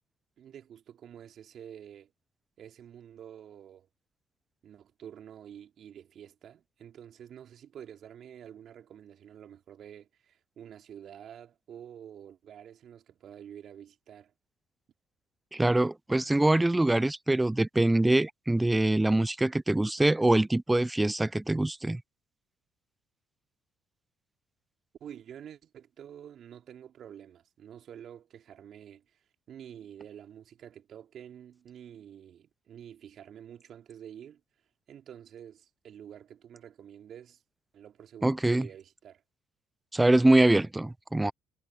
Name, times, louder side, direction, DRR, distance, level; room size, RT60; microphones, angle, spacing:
voice 1, 0.4-2.1 2.6-3.9 4.6-14.3 25.0-29.2 29.5-34.4 34.9-37.4 37.7-39.2, right 9 dB, 55° right, 3.4 m, -48 dB
voice 2, 15.5-22.0 38.2-38.7 39.9-41.3, right 1 dB, 10° right, 0.7 m, -24 dB
hypercardioid pair, 65°, 0 cm